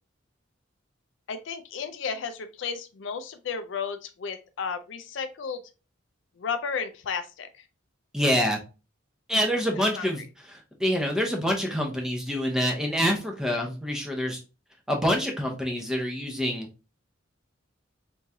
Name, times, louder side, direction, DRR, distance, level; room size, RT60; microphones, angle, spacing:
voice 1, 1.3-5.6 6.4-7.5 9.7-10.1, left 5 dB, 65° left, 9 dB, 0.4 m, -33 dB
voice 2, 8.1-8.6 9.3-10.2 10.5-14.4 14.9-16.7, equal, 5° right, 1 dB, 0.7 m, -26 dB
3.5 x 3.0 x 2.7 m, 0.31 s
head